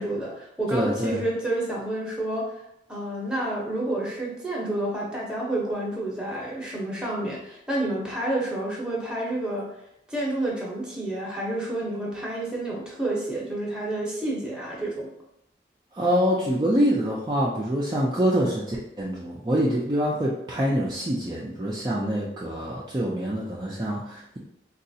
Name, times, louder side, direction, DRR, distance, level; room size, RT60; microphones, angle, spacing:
voice 1, 0.0-2.4 2.9-9.6 10.1-15.1, right 1 dB, 5° right, -5 dB, 0.7 m, -29 dB
voice 2, 0.7-1.2 15.9-24.4, equal, 25° right, -6 dB, 0.4 m, -25 dB
3.9 x 2.3 x 2.7 m, 0.80 s
head